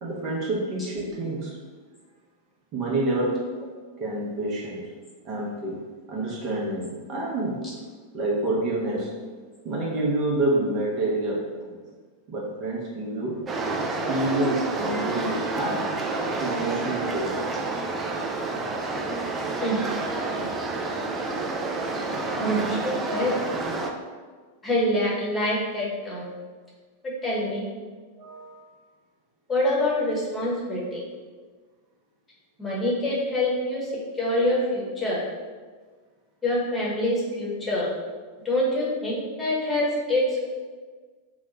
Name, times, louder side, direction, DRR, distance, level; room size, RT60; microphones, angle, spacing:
voice 1, 0.0-1.6 2.7-3.5 4.0-4.9 5.2-5.8 6.1-7.7 8.1-9.2 9.6-11.8 12.3-15.9 16.2-17.4 28.2-28.7 33.9-34.0, right 2 dB, 40° right, -4 dB, 0.7 m, -28 dB
sound 1, 13.5-23.9, right 3 dB, 20° right, 0.3 m, -29 dB
voice 2, 22.4-23.4 24.6-26.3 27.2-27.7 29.5-31.0 32.6-35.2 36.4-37.9 38.4-40.5, left 1 dB, 15° left, -6 dB, 1.0 m, -25 dB
2.9 x 2.1 x 3.7 m, 1.5 s
figure-of-eight pair, 90°, 0 cm